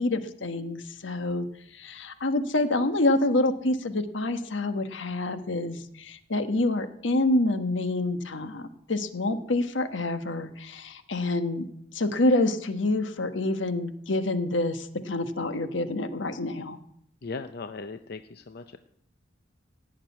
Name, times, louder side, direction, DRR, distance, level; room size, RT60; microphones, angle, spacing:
voice 1, 0.0-1.5 1.8-11.6 11.9-16.8, left 2 dB, 80° left, 9 dB, 1.3 m, -27 dB
voice 2, 17.2-18.8, left 4 dB, 60° left, 9 dB, 0.6 m, -38 dB
16.5 x 6.7 x 9.5 m, 0.70 s
head